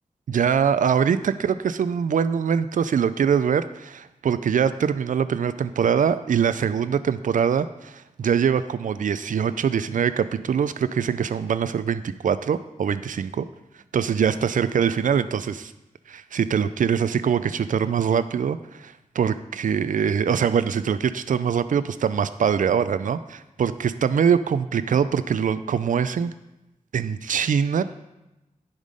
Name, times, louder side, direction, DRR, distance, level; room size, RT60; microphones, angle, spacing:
voice 1, 0.3-13.4 13.9-15.7 16.1-26.3 26.9-27.8, right 7 dB, 70° right, 13 dB, 0.4 m, -23 dB
10.5 x 3.7 x 5.0 m, 0.97 s
cardioid pair, 45°, 14 cm